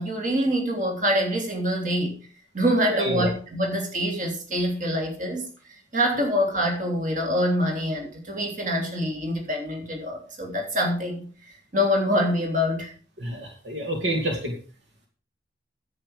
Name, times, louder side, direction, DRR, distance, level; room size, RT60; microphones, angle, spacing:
voice 1, 0.0-2.2 2.5-5.5 5.9-11.3 11.7-12.9, equal, 45° right, 2 dB, 3.4 m, -25 dB
voice 2, 2.9-3.2 13.2-14.5, equal, 75° right, 2 dB, 2.4 m, -27 dB
10.5 x 9.0 x 5.1 m, 0.38 s
head